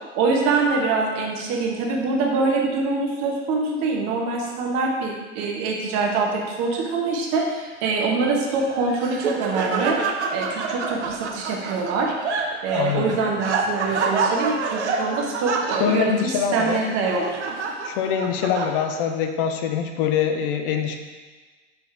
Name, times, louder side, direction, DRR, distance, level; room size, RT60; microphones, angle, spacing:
voice 1, 0.1-10.0 10.3-12.1 12.6-17.3, right 4 dB, 45° right, 0 dB, 1.2 m, -24 dB
Laughter, 8.6-19.1, right 4 dB, 70° right, 0.8 m, -28 dB
voice 2, 12.7-13.2 15.8-16.8 17.8-21.0, left 7 dB, 50° left, 5 dB, 0.6 m, -24 dB
6.6 x 4.1 x 3.5 m, 1.4 s
figure-of-eight pair, 85°, 36 cm